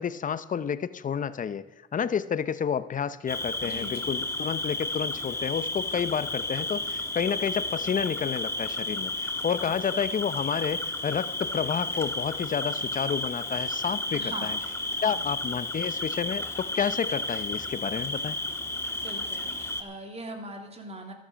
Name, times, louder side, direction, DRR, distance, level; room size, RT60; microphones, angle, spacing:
voice 1, 0.0-1.7 1.9-14.6 15.0-18.4, left 7 dB, 40° left, 15 dB, 0.8 m, -30 dB
Cricket, 3.3-19.8, left 2 dB, 15° left, 1.5 m, -32 dB
voice 2, 3.6-4.1 9.6-9.8 14.1-14.5 15.0-15.2 19.0-21.1, right 1 dB, 30° right, 3 dB, 2.9 m, -41 dB
13.0 x 13.0 x 5.2 m, 1.2 s
cardioid pair, 90°, 20 cm